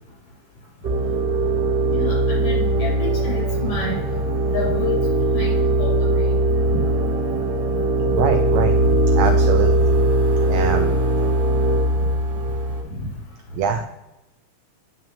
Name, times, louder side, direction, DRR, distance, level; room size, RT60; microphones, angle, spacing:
sound 1, 0.8-12.8, right 2 dB, 65° right, 1.1 m, -20 dB
voice 1, 1.9-4.0 4.5-5.1 5.3-6.3 6.7-6.8 8.5-8.9, left 3 dB, 60° left, -5 dB, 4.3 m, -29 dB
voice 2, 8.1-8.7 9.2-9.9 10.5-11.0 13.6-13.8, right 6 dB, 85° right, 6 dB, 1.5 m, -23 dB
10.0 x 5.8 x 2.8 m, 0.95 s
omnidirectional pair, 3.7 m